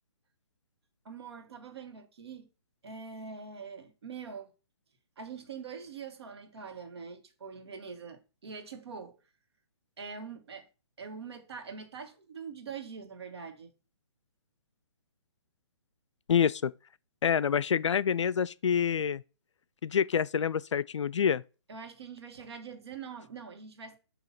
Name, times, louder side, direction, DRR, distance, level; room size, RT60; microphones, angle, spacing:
voice 1, 1.0-2.5 2.8-4.5 5.2-9.2 10.0-10.7 11.0-13.7 21.7-24.0, right 6 dB, 60° right, 1.6 m, -44 dB
voice 2, 16.3-16.7 17.2-19.2 19.8-21.4, left 7 dB, 80° left, 0.4 m, -27 dB
7.5 x 2.9 x 5.7 m
hypercardioid pair, 150°, 15 cm